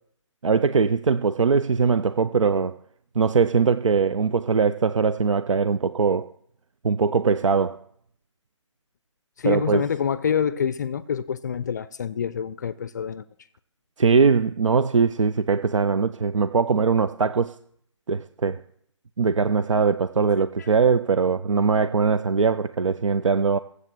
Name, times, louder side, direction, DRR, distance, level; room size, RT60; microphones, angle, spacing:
voice 1, 0.4-2.8 3.2-6.3 6.8-7.8 9.4-9.8 14.0-17.5 18.1-18.6 19.2-23.6, right 5 dB, 75° right, 0.6 m, -21 dB
voice 2, 9.4-13.2 20.6-20.7, left 7 dB, 35° left, 0.5 m, -26 dB
16.5 x 8.0 x 7.5 m
figure-of-eight pair, 155°, 16 cm